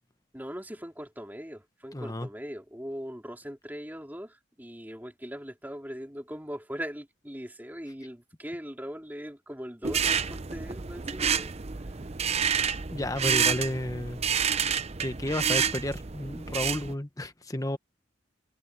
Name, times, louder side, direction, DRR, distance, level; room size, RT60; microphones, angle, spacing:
voice 1, 0.3-11.5, equal, 10° right, 3.3 m, -40 dB
voice 2, 1.9-2.3 12.9-14.3 15.0-17.8, left 1 dB, 20° left, 1.2 m, -32 dB
sound 1, 9.8-16.9, right 7 dB, 35° right, 0.7 m, -29 dB
head